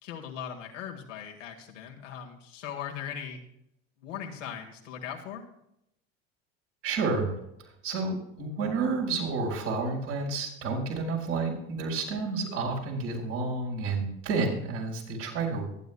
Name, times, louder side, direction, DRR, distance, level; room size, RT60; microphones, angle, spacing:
voice 1, 0.0-3.4 4.0-5.5, left 8 dB, 85° left, 2 dB, 1.9 m, -39 dB
voice 2, 6.8-7.4 7.8-15.7, right 3 dB, 75° right, -2 dB, 4.8 m, -30 dB
23.5 x 9.4 x 2.3 m, 0.80 s
hypercardioid pair, 80°, 36 cm